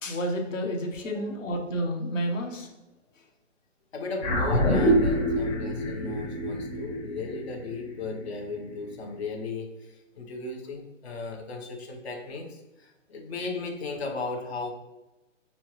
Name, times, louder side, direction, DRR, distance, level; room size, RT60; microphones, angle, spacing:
voice 1, 0.0-2.7, equal, 85° left, 2 dB, 1.1 m, -30 dB
voice 2, 3.9-14.7, left 3 dB, 55° left, 2 dB, 0.9 m, -36 dB
sound 1, 4.2-8.8, equal, 30° left, 1.4 m, -26 dB
4.2 x 2.2 x 3.0 m, 1.0 s
hypercardioid pair, 170°, 37 cm